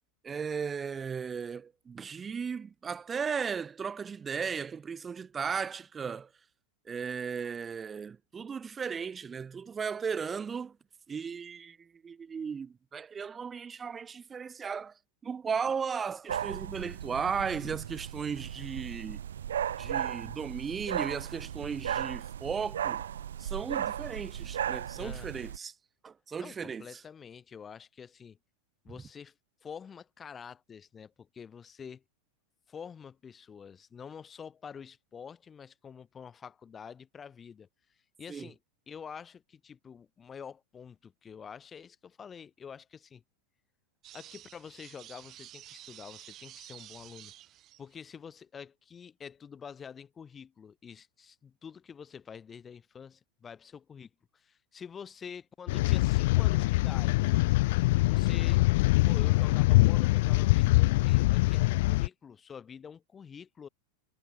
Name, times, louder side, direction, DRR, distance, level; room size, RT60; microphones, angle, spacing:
voice 1, 0.2-6.3 6.9-10.8 11.1-14.9 15.2-19.2 19.8-23.0 23.4-25.7 26.0-27.0 29.0-29.1 38.3-38.5, right 6 dB, 20° right, 2.7 m, -36 dB
sound 1, 16.3-25.6, right 10 dB, 80° right, 2.2 m, -36 dB
voice 2, 25.0-25.5 26.4-28.4 28.8-29.3 29.6-32.0 32.7-37.7 38.2-38.6 38.9-43.2 44.1-47.3 47.8-57.3 58.0-58.6 59.0-63.7, left 7 dB, 25° left, 2.8 m, -47 dB
sound 2, 44.0-48.1, right 13 dB, 40° right, 2.4 m, -51 dB
sound 3, 55.7-62.1, left 20 dB, 65° left, 0.6 m, -24 dB
hypercardioid pair, 100°, 0 cm